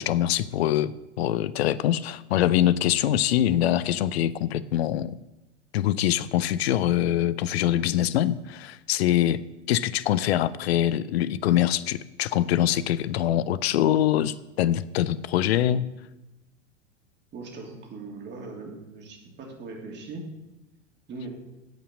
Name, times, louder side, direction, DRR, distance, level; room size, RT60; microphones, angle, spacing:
voice 1, 0.0-5.1 5.7-9.4 9.7-15.9, left 12 dB, 55° left, 17 dB, 0.6 m, -24 dB
voice 2, 17.3-20.2 21.1-21.3, right 3 dB, 30° right, 1 dB, 3.0 m, -40 dB
16.5 x 5.7 x 7.2 m, 0.98 s
figure-of-eight pair, 90°, 37 cm